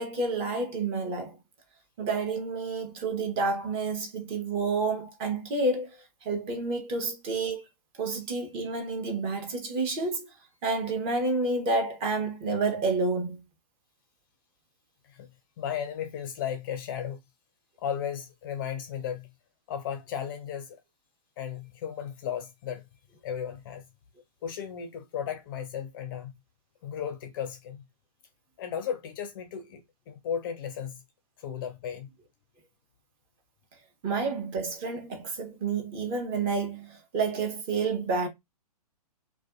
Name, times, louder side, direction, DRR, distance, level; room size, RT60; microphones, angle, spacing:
voice 1, 0.0-1.4 2.0-7.6 8.0-10.3 10.6-13.4 34.0-38.3, right 3 dB, 25° right, 0.7 m, -29 dB
voice 2, 15.6-17.2 17.8-19.3 19.7-20.8 21.4-22.8 23.2-23.8 24.4-26.3 26.8-27.8 28.6-31.0 31.4-32.1, left 8 dB, 35° left, 0.4 m, -35 dB
2.5 x 2.2 x 2.3 m
figure-of-eight pair, 120°, 20 cm